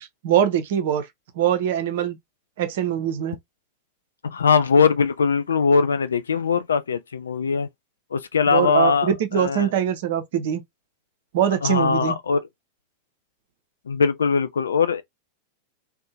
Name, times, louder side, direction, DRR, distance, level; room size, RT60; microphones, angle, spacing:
voice 1, 0.2-1.1 1.4-2.2 2.6-3.4 8.5-10.6 11.3-12.2, right 9 dB, 55° right, 0.5 m, -22 dB
voice 2, 4.2-7.7 8.1-9.7 11.6-12.4 13.9-15.0, left 5 dB, 70° left, 0.3 m, -21 dB
2.6 x 2.1 x 2.7 m
figure-of-eight pair, 90°, 0 cm